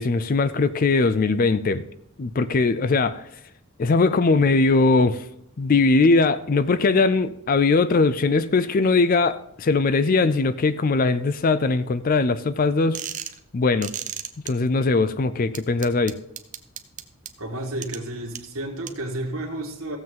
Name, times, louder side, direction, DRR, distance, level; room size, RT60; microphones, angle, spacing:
voice 1, 0.0-1.8 2.2-3.2 3.8-5.2 5.6-13.0 13.5-13.9 14.5-16.2, left 3 dB, 40° left, 0.4 m, -20 dB
sound 1, 12.9-13.4 13.8-14.5 15.5-17.3 17.8-18.0 18.4-18.5 18.9-19.0, right 10 dB, 35° right, 0.6 m, -32 dB
voice 2, 17.4-20.0, right 1 dB, 75° right, 1.8 m, -31 dB
15.0 x 7.5 x 3.8 m
head